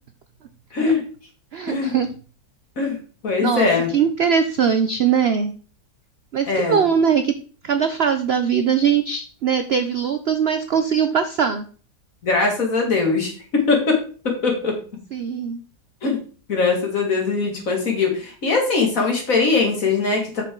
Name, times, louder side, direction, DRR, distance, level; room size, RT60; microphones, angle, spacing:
voice 1, 0.7-1.0 1.7-1.9 2.8-3.0 3.2-3.9 6.5-6.8 12.2-14.8 16.0-16.2 16.5-20.4, left 4 dB, 55° left, 1 dB, 2.5 m, -21 dB
voice 2, 1.5-2.1 3.4-3.7 3.9-5.5 6.3-7.4 7.6-11.6 15.1-15.6, right 7 dB, 65° right, 10 dB, 0.6 m, -21 dB
7.9 x 6.4 x 3.7 m, 0.40 s
omnidirectional pair, 1.7 m